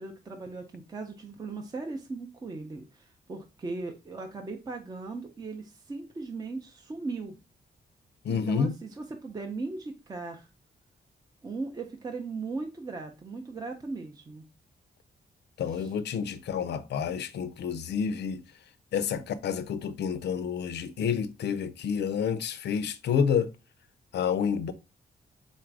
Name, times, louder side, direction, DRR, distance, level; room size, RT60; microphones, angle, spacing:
voice 1, 0.0-7.4 8.3-10.5 11.4-14.4 15.7-15.9, right 3 dB, 20° right, 0.5 m, -38 dB
voice 2, 8.2-8.8 15.6-18.4 18.9-23.5 24.1-24.7, left 7 dB, 80° left, 0.5 m, -29 dB
4.1 x 2.5 x 4.6 m
wide cardioid pair, 170°, 17 cm